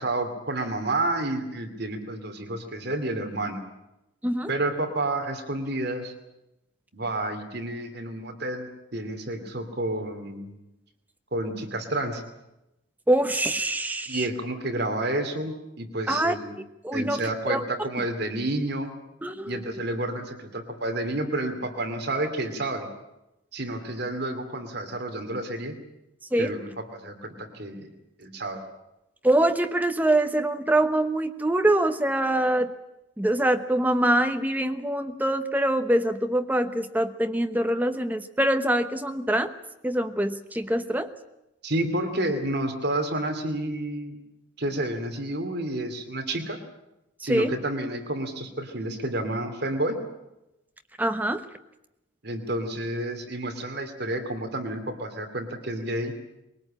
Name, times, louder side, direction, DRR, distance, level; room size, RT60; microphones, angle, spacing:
voice 1, 0.0-3.6 4.5-6.1 6.9-10.6 11.3-12.2 14.1-16.6 16.9-18.9 19.5-22.9 23.5-25.8 26.4-27.9 28.2-28.6 41.6-44.2 44.6-46.6 47.2-50.0 52.2-56.1, right 1 dB, 50° right, 6 dB, 2.7 m, -30 dB
voice 2, 13.1-14.2 16.1-16.3 16.8-17.6 19.2-19.6 26.3-26.5 29.2-32.7 33.2-39.5 39.8-41.1 47.2-47.5 51.0-51.4, right 1 dB, 10° right, 8 dB, 1.0 m, -24 dB
22.0 x 19.0 x 8.8 m, 0.91 s
head